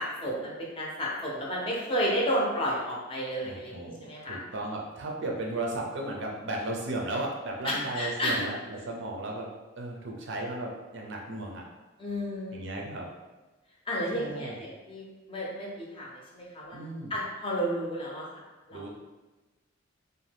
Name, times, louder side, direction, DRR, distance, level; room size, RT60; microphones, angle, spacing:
voice 1, 0.0-4.4 7.6-8.4 12.0-12.6 13.9-16.8 17.1-18.3 18.7-18.8, equal, 25° left, -4 dB, 0.6 m, -32 dB
voice 2, 3.4-9.5 9.8-11.6 12.5-13.1 14.1-14.6 16.7-17.1 18.7-18.9, right 2 dB, 60° right, -1 dB, 0.5 m, -35 dB
2.7 x 2.2 x 3.3 m, 1.1 s
head